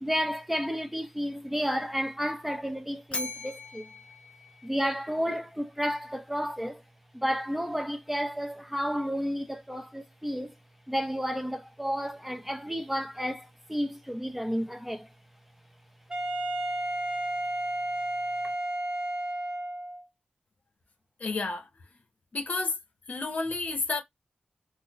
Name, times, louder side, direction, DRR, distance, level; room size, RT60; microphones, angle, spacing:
voice 1, 0.0-3.9 4.6-6.8 7.1-10.6 10.9-15.1, equal, 5° right, 0.6 m, -31 dB
Bell, 3.1-5.3, left 2 dB, 40° left, 0.7 m, -40 dB
Wind instrument woodwind instrument, 16.1-20.0, right 1 dB, 35° right, 0.9 m, -32 dB
voice 2, 21.2-21.7 22.3-22.8 23.1-24.0, left 3 dB, 70° left, 1.0 m, -30 dB
3.9 x 2.1 x 3.0 m
wide cardioid pair, 65°, 3 cm